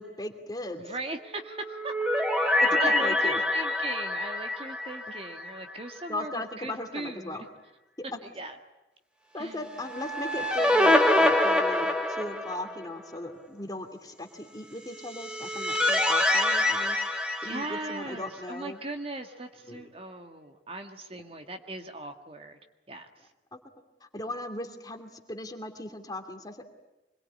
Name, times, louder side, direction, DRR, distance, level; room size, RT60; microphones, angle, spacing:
voice 1, 0.0-0.8 2.7-3.4 6.1-7.4 9.3-17.0 17.5-18.8 19.6-19.9 24.1-26.6, left 1 dB, 20° left, 5 dB, 2.6 m, -37 dB
voice 2, 0.8-1.9 2.4-7.5 8.2-8.6 9.3-9.7 17.4-22.6 22.9-23.1, right 2 dB, 35° right, 6 dB, 1.8 m, -39 dB
sound 1, 1.5-5.8 6.1-6.2 9.7-12.8 14.9-18.3, left 1 dB, 5° right, 2.3 m, -26 dB
25.5 x 22.0 x 9.8 m, 0.98 s
head